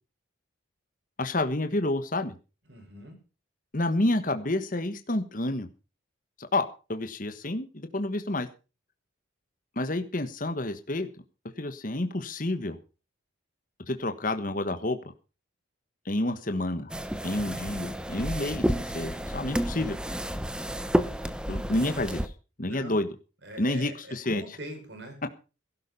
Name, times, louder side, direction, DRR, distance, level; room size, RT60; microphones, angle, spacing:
voice 1, 1.2-2.3 3.7-5.7 6.5-6.6 6.9-8.5 9.8-11.1 11.6-12.8 13.9-15.0 16.0-16.9 17.2-18.6 18.9-20.0 21.5-22.2 22.6-23.1 23.6-24.6, left 1 dB, 40° left, 8 dB, 1.3 m, -29 dB
voice 2, 2.7-3.2 22.7-23.0 23.4-25.2, right 1 dB, 55° right, 5 dB, 6.0 m, -43 dB
sound 1, 16.9-22.3, equal, 5° right, 0.9 m, -30 dB
17.0 x 11.5 x 5.5 m, 0.35 s
head